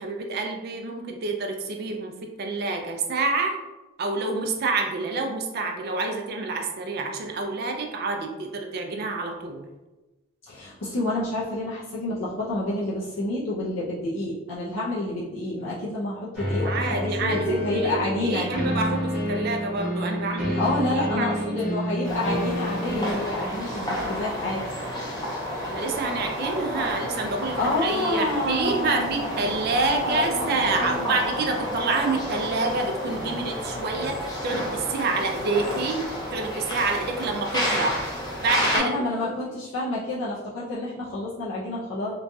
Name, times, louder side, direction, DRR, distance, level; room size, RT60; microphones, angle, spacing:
voice 1, 0.0-3.5 4.0-9.6 16.6-21.5 25.6-38.0 38.4-38.9 39.2-39.4, right 3 dB, 55° right, 3 dB, 0.4 m, -28 dB
voice 2, 10.5-18.4 20.6-24.6 27.6-31.1 38.7-42.1, left 2 dB, 85° left, -8 dB, 0.6 m, -29 dB
sound 1, 16.3-23.1, equal, 5° right, 0.9 m, -29 dB
sound 2, 22.0-38.8, equal, 20° left, 0.6 m, -30 dB
3.0 x 2.3 x 2.6 m, 1.1 s
head